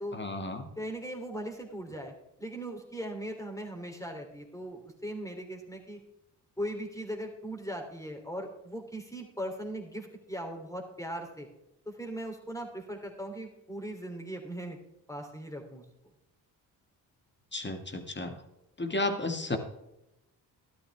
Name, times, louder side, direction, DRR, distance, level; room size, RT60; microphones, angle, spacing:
voice 1, 0.1-0.7 17.5-18.4 18.8-19.6, left 2 dB, 25° left, 6 dB, 2.0 m, -33 dB
voice 2, 0.8-2.1 2.4-6.0 6.6-11.5 11.8-14.8 15.1-15.8, right 1 dB, 5° left, 2 dB, 3.2 m, -39 dB
12.5 x 12.5 x 3.5 m, 0.87 s
hypercardioid pair, 40°, 45 cm